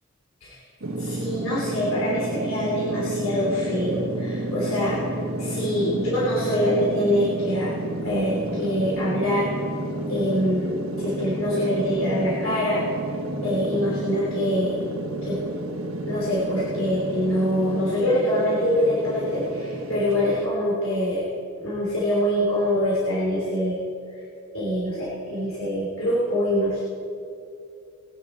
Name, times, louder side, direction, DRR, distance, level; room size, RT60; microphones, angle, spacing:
sound 1, 0.8-20.5, right 1 dB, 70° right, 1.4 m, -31 dB
voice 1, 1.0-5.1 5.4-7.7 8.0-9.5 10.1-12.8 13.4-14.8 15.2-15.4 16.0-21.2 21.6-23.8 24.5-26.8, equal, 70° left, -7 dB, 3.1 m, -24 dB
20.0 x 10.0 x 4.3 m, 2.6 s
head